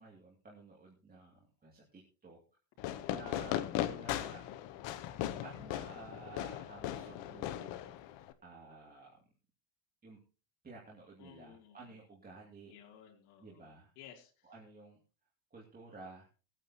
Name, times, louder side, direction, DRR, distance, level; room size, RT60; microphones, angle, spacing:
voice 1, 0.0-2.4 3.1-4.4 5.4-7.9 8.4-9.2 10.0-10.2 10.6-12.7 13.4-13.9 14.4-15.0 15.5-16.3, right 3 dB, 20° right, -3 dB, 2.6 m, -53 dB
Fireworks, 2.8-8.3, left 12 dB, 60° left, 1.1 m, -38 dB
voice 2, 3.7-4.7 11.2-12.0 12.7-14.5, left 9 dB, 85° left, -4 dB, 2.8 m, -57 dB
22.0 x 9.0 x 2.9 m, 0.35 s
cardioid pair, 150°, 49 cm